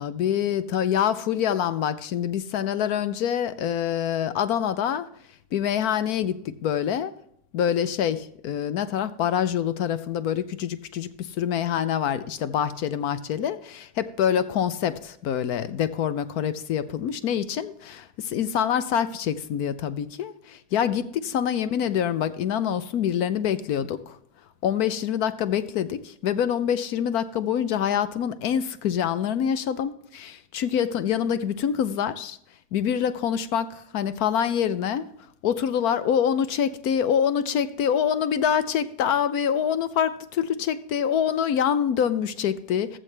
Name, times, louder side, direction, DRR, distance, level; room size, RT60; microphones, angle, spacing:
voice 1, 0.0-5.1 5.5-7.1 7.5-11.1 11.4-24.2 24.6-32.4 32.7-35.1 35.4-43.0, left 8 dB, 40° left, 14 dB, 0.5 m, -25 dB
13.5 x 7.4 x 3.3 m, 0.71 s
supercardioid pair, 175°, 0 cm